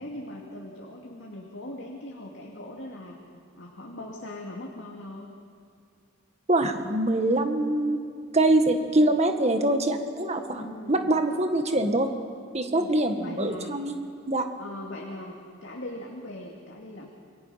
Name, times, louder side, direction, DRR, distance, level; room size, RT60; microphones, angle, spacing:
voice 1, 0.0-3.2 3.5-5.3 10.6-11.1 12.7-13.7 14.6-17.1, left 1 dB, 65° left, -1 dB, 2.4 m, -40 dB
voice 2, 6.5-8.0 8.3-12.1 12.5-14.0 14.3-14.5, right 1 dB, 35° right, 6 dB, 1.7 m, -24 dB
28.0 x 21.5 x 5.8 m, 2.2 s
head